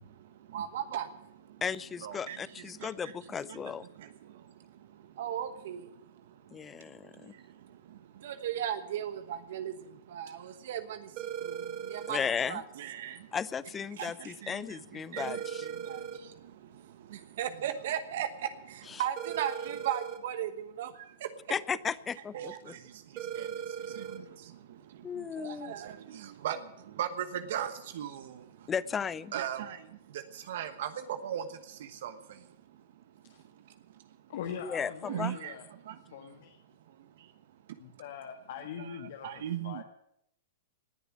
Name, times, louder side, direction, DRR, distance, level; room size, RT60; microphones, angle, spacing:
voice 1, 0.0-1.6 2.0-12.2 12.5-13.3 13.9-21.3 22.3-28.7 29.3-34.2 35.1-36.2 36.9-37.3 37.7-37.8 38.8-38.9 39.2-39.8, right 10 dB, 65° right, 10 dB, 1.2 m, -39 dB
voice 2, 1.6-3.8 6.5-7.3 12.1-12.6 13.3-15.7 21.5-22.7 25.0-25.7 28.7-29.3 34.6-35.4, left 7 dB, 20° left, 20 dB, 0.5 m, -35 dB
sound 1, 11.2-12.2 15.2-16.2 19.2-20.2 23.2-24.2, right 8 dB, 35° right, 1.7 m, -38 dB
voice 3, 34.3-35.7 36.1-36.6 37.8-39.8, left 8 dB, 65° left, 4 dB, 1.6 m, -42 dB
19.0 x 7.0 x 9.9 m, 0.79 s
hypercardioid pair, 130°, 0 cm